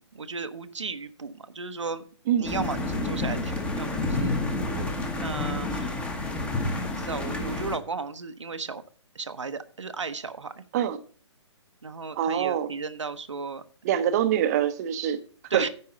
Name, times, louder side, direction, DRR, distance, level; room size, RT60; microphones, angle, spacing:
voice 1, 0.0-2.0 2.4-4.3 5.1-6.1 6.9-8.8 9.1-10.6 11.8-13.6 15.5-15.7, right 4 dB, 75° right, 0.9 m, -35 dB
sound 1, 2.4-7.8, left 2 dB, 5° left, 1.0 m, -29 dB
voice 2, 12.2-12.7 13.8-15.2 15.5-15.7, right 10 dB, 35° right, 0.7 m, -25 dB
9.7 x 4.7 x 6.7 m
figure-of-eight pair, 130°, 15 cm